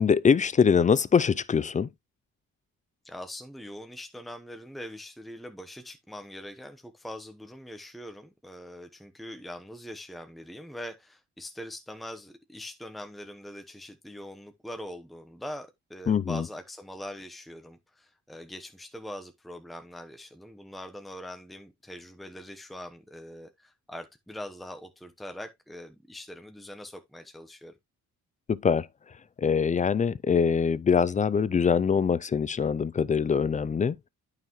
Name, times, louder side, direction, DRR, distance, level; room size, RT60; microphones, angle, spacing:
voice 1, 0.0-1.9 16.1-16.4 28.5-28.9 29.4-34.0, left 6 dB, 25° left, 0.4 m, -23 dB
voice 2, 3.0-27.7, equal, ahead, 1.0 m, -42 dB
8.9 x 5.8 x 3.1 m
cardioid pair, 90°, 30 cm